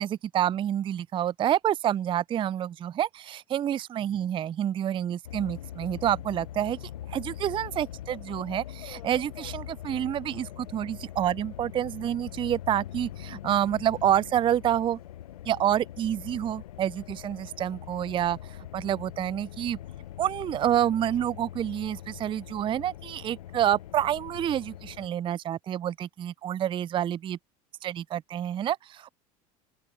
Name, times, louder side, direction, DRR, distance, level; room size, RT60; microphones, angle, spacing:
voice 1, 0.0-6.8 7.1-15.0 15.5-18.4 18.7-19.8 20.2-27.4 27.8-29.1, right 11 dB, 25° right, 0.4 m, -28 dB
sound 1, 5.2-25.1, left 12 dB, 80° left, 0.9 m, -42 dB
open air
hypercardioid pair, 75°, 19 cm